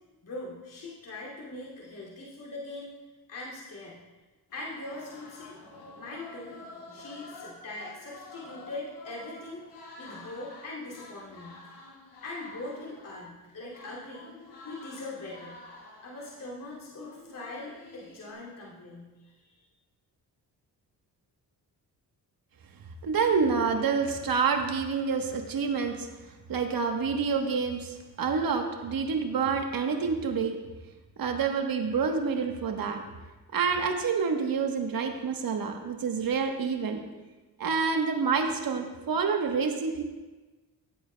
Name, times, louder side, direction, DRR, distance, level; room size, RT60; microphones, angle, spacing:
voice 1, 0.2-3.0 3.3-4.0 4.5-5.6 5.9-6.6 6.9-9.6 10.0-11.6 12.2-14.3 14.6-15.6 16.0-19.7, left 2 dB, 55° left, -6 dB, 2.7 m, -41 dB
sound 1, 4.5-18.3, left 2 dB, 80° left, 1.9 m, -49 dB
voice 2, 23.0-26.1 26.5-30.6 31.2-33.0 33.5-37.0 37.6-40.0, right 5 dB, 60° right, 4 dB, 1.2 m, -28 dB
16.0 x 8.1 x 2.3 m, 1.2 s
cardioid pair, 80°, 39 cm